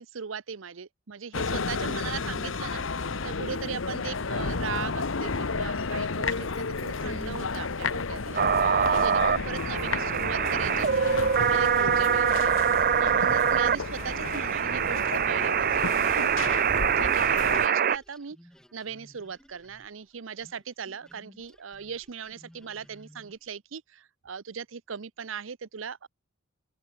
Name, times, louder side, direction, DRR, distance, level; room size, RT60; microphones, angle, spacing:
voice 1, 0.0-8.4 8.8-12.5 13.0-18.4 18.7-26.1, right 6 dB, 90° right, 0.7 m, -39 dB
sound 1, 1.3-17.7, left 4 dB, 85° left, 1.1 m, -32 dB
sound 2, 8.4-18.0, right 7 dB, 50° right, 0.7 m, -24 dB
sound 3, 10.7-17.0 17.2-23.5, equal, 5° left, 3.8 m, -57 dB
open air
head